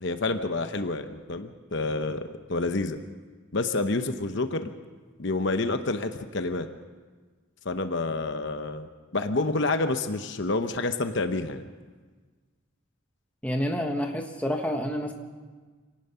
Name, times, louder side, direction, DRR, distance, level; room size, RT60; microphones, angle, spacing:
voice 1, 0.0-2.2 2.5-3.0 3.5-4.7 5.2-6.7 7.6-8.9 9.1-11.7, left 3 dB, 55° left, 8 dB, 0.9 m, -28 dB
voice 2, 13.4-15.1, equal, 5° left, 3 dB, 1.4 m, -28 dB
25.5 x 17.5 x 5.7 m, 1.4 s
head